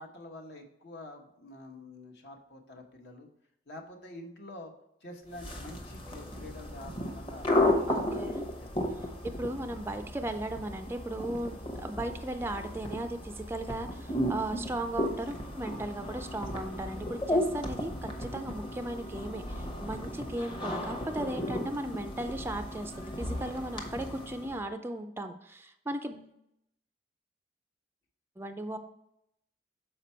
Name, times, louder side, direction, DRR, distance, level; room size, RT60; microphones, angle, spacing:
voice 1, 0.0-3.3 3.7-4.7 5.0-7.5 7.8-9.1, left 1 dB, 60° left, 2 dB, 1.0 m, -47 dB
sound 1, 5.3-24.6, left 1 dB, 25° left, 0.9 m, -34 dB
voice 2, 7.9-8.4 9.4-26.3 28.4-28.8, right 1 dB, 15° right, 7 dB, 0.4 m, -37 dB
6.7 x 4.5 x 4.3 m, 0.78 s
head